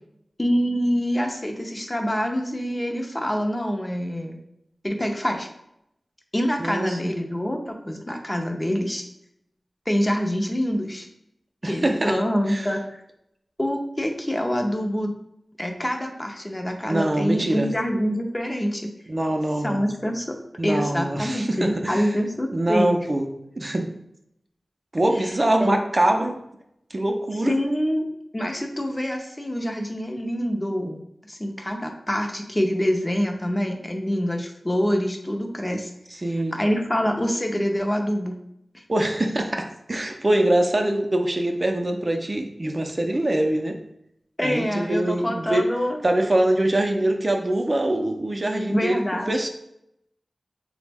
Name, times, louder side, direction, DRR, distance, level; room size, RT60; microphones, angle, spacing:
voice 1, 0.4-4.4 4.8-5.5 6.3-9.0 9.9-11.1 11.6-13.0 13.6-15.1 15.6-18.9 19.6-20.4 20.6-23.0 25.1-25.3 25.6-25.7 27.5-28.1 28.3-31.0 31.3-35.9 36.2-38.4 38.7-38.8 44.4-46.0 48.7-49.4, equal, 25° left, 3 dB, 0.5 m, -25 dB
voice 2, 6.6-7.0 11.6-12.1 12.5-12.7 16.9-17.7 19.1-19.9 20.6-22.1 22.5-23.3 23.6-23.9 24.9-26.4 26.9-27.6 36.2-36.5 38.9-43.8 44.4-45.6 46.0-49.0 49.3-49.5, right 1 dB, 40° right, 3 dB, 0.4 m, -23 dB
3.5 x 2.0 x 3.3 m, 0.77 s
wide cardioid pair, 65°, 0 cm